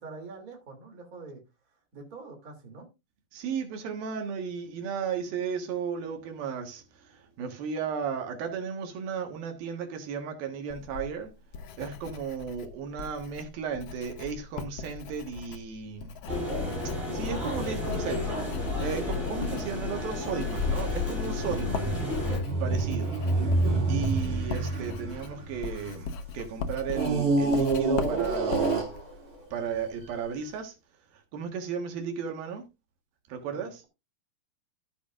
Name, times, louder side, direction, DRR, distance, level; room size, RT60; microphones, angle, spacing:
voice 1, 0.0-1.4 1.9-2.9 33.5-33.9, right 4 dB, 25° right, 2.9 m, -45 dB
voice 2, 3.3-6.8 7.4-11.3 11.8-16.1 17.1-18.4 18.8-21.8 22.6-23.2 23.9-26.1 26.3-28.9 29.5-30.7 31.3-32.6 33.3-33.8, right 6 dB, 80° right, 3.4 m, -34 dB
Writing, 10.7-30.2, left 5 dB, 75° left, 1.4 m, -40 dB
London Underground - London Bridge Station, 16.3-22.4, left 3 dB, 15° left, 7.3 m, -31 dB
sound 1, 21.5-26.2 26.9-29.4 30.1-30.2, right 2 dB, 50° right, 4.1 m, -27 dB
14.0 x 8.2 x 2.5 m
omnidirectional pair, 4.1 m